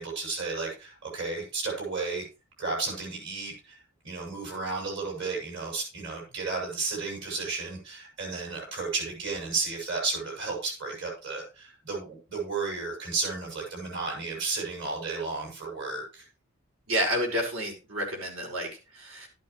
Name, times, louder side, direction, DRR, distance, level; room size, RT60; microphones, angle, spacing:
voice 1, 0.0-2.3 2.6-3.8 4.0-16.3, right 3 dB, 60° right, -2 dB, 6.8 m, -33 dB
voice 2, 16.9-19.3, equal, 80° right, 1 dB, 5.7 m, -30 dB
12.5 x 11.5 x 3.3 m, 0.31 s
head